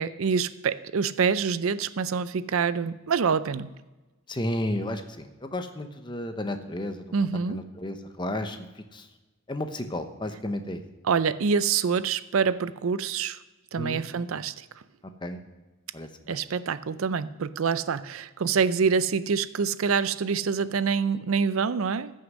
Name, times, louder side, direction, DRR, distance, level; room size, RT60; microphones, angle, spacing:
voice 1, 0.0-3.7 7.1-7.6 11.1-13.4 13.7-14.6 16.3-22.1, right 6 dB, 80° right, 15 dB, 0.5 m, -26 dB
voice 2, 4.3-7.0 7.5-9.1 9.5-10.8 13.8-14.1 15.2-15.4 15.9-16.4, left 1 dB, 20° left, 7 dB, 0.9 m, -33 dB
15.0 x 6.6 x 6.1 m, 1.1 s
head